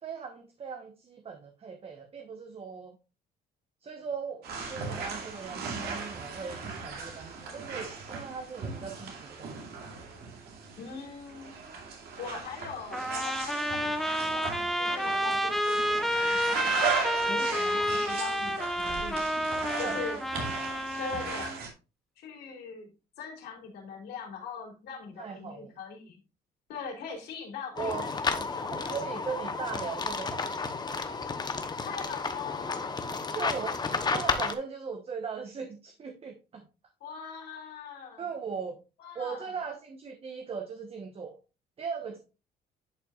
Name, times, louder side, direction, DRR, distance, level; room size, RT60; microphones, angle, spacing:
voice 1, 0.0-3.0 3.8-9.9 19.8-20.0 25.2-25.7 27.8-28.1 28.7-31.0 33.3-33.8 34.1-36.6 38.2-38.8 39.1-41.4 41.8-42.2, right 6 dB, 35° right, 4 dB, 1.0 m, -39 dB
sound 1, 4.4-21.7, right 5 dB, 70° right, 2.6 m, -37 dB
voice 2, 10.8-11.7 12.2-16.9 17.3-19.3 19.8-20.2 21.0-21.6 22.2-22.9 23.2-26.2 26.7-29.3 31.8-33.2 37.0-38.2 39.0-39.5, left 5 dB, 75° left, 0 dB, 3.6 m, -41 dB
Trumpet, 12.9-21.6, equal, ahead, 0.8 m, -30 dB
sound 2, 27.8-34.5, left 4 dB, 25° left, 0.9 m, -32 dB
10.5 x 5.7 x 2.4 m, 0.30 s
cardioid pair, 110°, 17 cm